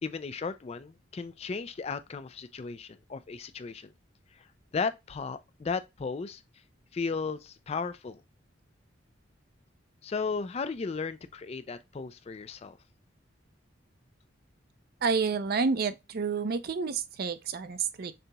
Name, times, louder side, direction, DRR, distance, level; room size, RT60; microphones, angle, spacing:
voice 1, 0.0-3.9 4.7-6.4 6.9-8.2 10.0-12.8, left 5 dB, 30° left, 0.3 m, -35 dB
voice 2, 15.0-18.1, right 5 dB, 50° right, 0.4 m, -29 dB
6.6 x 2.8 x 2.2 m
head